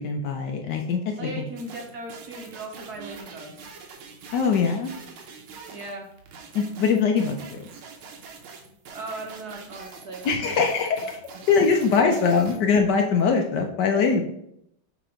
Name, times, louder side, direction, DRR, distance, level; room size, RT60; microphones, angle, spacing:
voice 1, 0.0-1.4 4.3-4.9 6.5-7.7 10.2-11.1 11.5-14.2, left 5 dB, 70° left, 3 dB, 1.1 m, -22 dB
voice 2, 1.1-3.7 5.7-6.1 8.9-10.5 11.0-11.1, right 2 dB, 60° right, 1 dB, 1.2 m, -38 dB
sound 1, 1.6-12.6, right 5 dB, 80° right, 1.8 m, -44 dB
6.7 x 3.0 x 5.0 m, 0.74 s
omnidirectional pair, 2.3 m